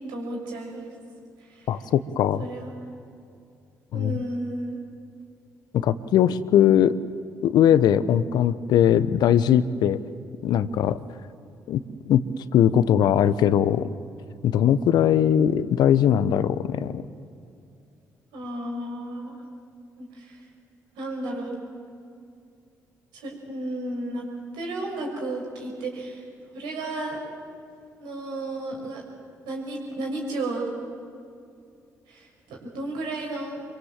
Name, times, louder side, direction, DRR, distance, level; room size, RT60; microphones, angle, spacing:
voice 1, 0.1-0.9 1.4-1.8 2.4-2.7 3.9-4.8 18.3-19.4 20.0-20.4 20.9-21.6 23.1-24.2 24.5-26.2 26.5-27.2 28.0-29.0 29.4-30.7 32.1-33.6, right 2 dB, 75° right, 0 dB, 6.1 m, -33 dB
voice 2, 1.7-2.5 3.9-4.2 5.7-7.0 7.4-10.0 10.4-11.0 11.7-11.8 12.1-12.2 12.5-13.9 14.4-17.0, left 10 dB, 70° left, 15 dB, 1.0 m, -20 dB
26.0 x 24.0 x 7.6 m, 2.5 s
hypercardioid pair, 45°, 8 cm